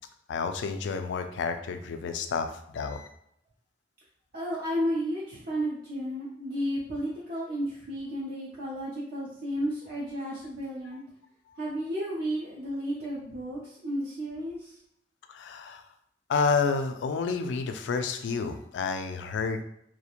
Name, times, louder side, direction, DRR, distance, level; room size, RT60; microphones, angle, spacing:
voice 1, 0.3-3.1 15.3-15.8 16.3-19.6, left 5 dB, 80° left, 7 dB, 0.3 m, -30 dB
voice 2, 4.3-11.0 11.6-14.7, equal, 55° right, -6 dB, 0.5 m, -32 dB
2.4 x 2.1 x 2.8 m, 0.73 s
head